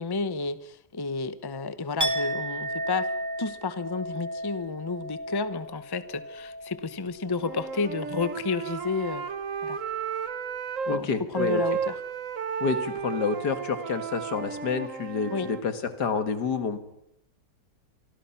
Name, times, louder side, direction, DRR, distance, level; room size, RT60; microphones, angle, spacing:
voice 1, 0.0-3.1 3.4-9.3 9.6-9.8 10.9-12.0 15.3-15.5, left 4 dB, 20° left, 13 dB, 0.7 m, -31 dB
Chink clink, 2.0-7.9 8.2-8.6, equal, 10° right, 1.9 m, -34 dB
Wind instrument woodwind instrument, 7.4-11.0 11.3-15.6, right 6 dB, 50° right, 1.4 m, -33 dB
voice 2, 10.9-11.6 12.6-16.8, left 5 dB, 70° left, 9 dB, 2.3 m, -28 dB
25.5 x 25.0 x 5.9 m, 0.79 s
omnidirectional pair, 1.8 m